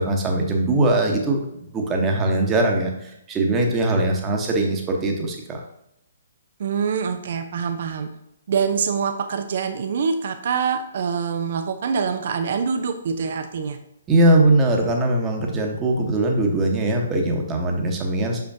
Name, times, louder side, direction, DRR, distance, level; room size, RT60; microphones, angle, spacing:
voice 1, 0.0-5.6 14.1-18.4, right 2 dB, 15° right, 1 dB, 1.1 m, -21 dB
voice 2, 6.6-8.1 8.5-13.8, right 6 dB, 50° right, 8 dB, 0.5 m, -25 dB
6.2 x 5.8 x 2.7 m, 0.80 s
figure-of-eight pair, 130°, 0 cm